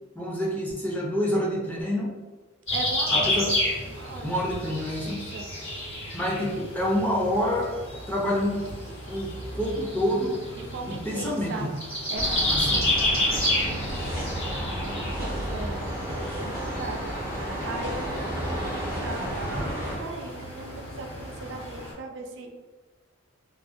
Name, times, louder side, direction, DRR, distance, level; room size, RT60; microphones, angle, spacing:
voice 1, 0.2-2.1 3.1-3.5 4.2-5.2 6.1-7.7 8.1-8.6 9.1-9.3 9.5-10.4 10.9-11.7 12.4-12.8, equal, 10° left, -4 dB, 0.4 m, -27 dB
sound 1, 2.7-21.9, left 1 dB, 90° left, 1.5 m, -31 dB
voice 2, 2.7-3.4 3.9-4.4 5.0-5.5 10.6-11.7 12.1-14.1 15.2-15.8 16.3-22.5, right 2 dB, 65° right, 3 dB, 0.3 m, -38 dB
sound 2, 12.1-20.0, equal, 45° left, 0.7 m, -32 dB
2.4 x 2.1 x 2.4 m, 1.3 s
head